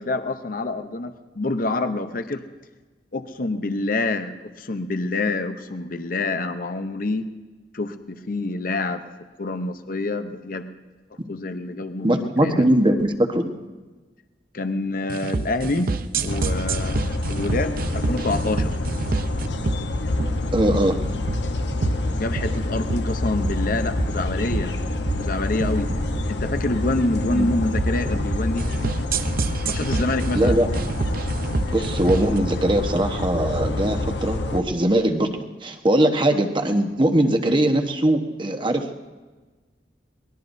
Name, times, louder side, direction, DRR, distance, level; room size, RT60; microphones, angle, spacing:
voice 1, 0.0-2.4 3.1-7.3 7.7-9.0 9.4-10.7 11.3-12.7 14.5-18.7 22.1-24.7 25.2-25.9 26.3-28.7 29.6-30.6, left 2 dB, 55° left, 9 dB, 0.8 m, -27 dB
voice 2, 12.0-13.5 20.5-21.0 27.3-27.5 30.3-30.9 31.7-35.3 35.6-39.1, right 1 dB, 30° right, 5 dB, 1.1 m, -21 dB
sound 1, 15.1-32.4, right 3 dB, 55° right, 0.6 m, -28 dB
sound 2, 16.3-34.6, left 2 dB, 80° left, 1.0 m, -27 dB
23.5 x 19.0 x 2.7 m, 1.3 s
head